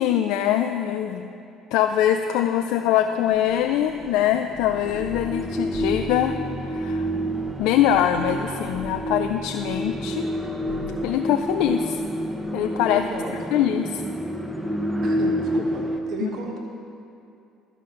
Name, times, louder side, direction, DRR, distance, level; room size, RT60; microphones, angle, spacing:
voice 1, 0.0-1.3 1.7-7.1 7.6-10.3 11.0-12.0 12.5-13.0 13.5-14.0 16.2-16.3, left 10 dB, 75° left, 6 dB, 0.3 m, -23 dB
sound 1, 3.1-16.0, equal, 10° right, 0.8 m, -28 dB
sound 2, 3.3-13.4, right 1 dB, 40° right, 1.0 m, -44 dB
Laughter, 7.8-8.8, right 2 dB, 90° right, 1.1 m, -41 dB
voice 2, 12.9-13.3 15.0-16.6, right 3 dB, 60° right, 0 dB, 1.4 m, -34 dB
12.0 x 5.0 x 5.8 m, 2.7 s
hypercardioid pair, 65°, 0 cm